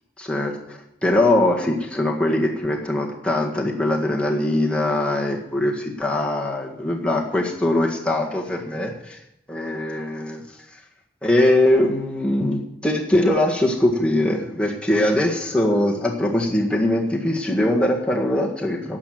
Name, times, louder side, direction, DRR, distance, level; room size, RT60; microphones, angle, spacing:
voice 1, 0.2-9.2 9.5-10.4 10.7-10.8 11.2-19.0, left 1 dB, 5° left, -1 dB, 1.7 m, -21 dB
11.5 x 7.6 x 9.4 m, 0.82 s
head